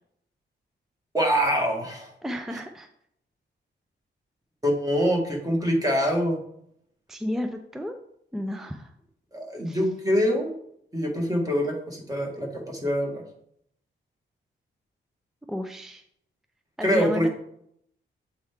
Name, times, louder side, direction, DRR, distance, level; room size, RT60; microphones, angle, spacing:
voice 1, 1.1-2.1 4.6-6.4 9.3-10.6 10.9-13.2 16.8-17.3, equal, 20° right, 0 dB, 1.8 m, -24 dB
voice 2, 2.2-2.9 7.1-8.0 8.3-8.9 9.7-9.8 15.5-16.0 16.8-17.3, left 1 dB, ahead, 6 dB, 0.5 m, -32 dB
7.7 x 4.5 x 3.6 m, 0.71 s
cardioid pair, 100°, 20 cm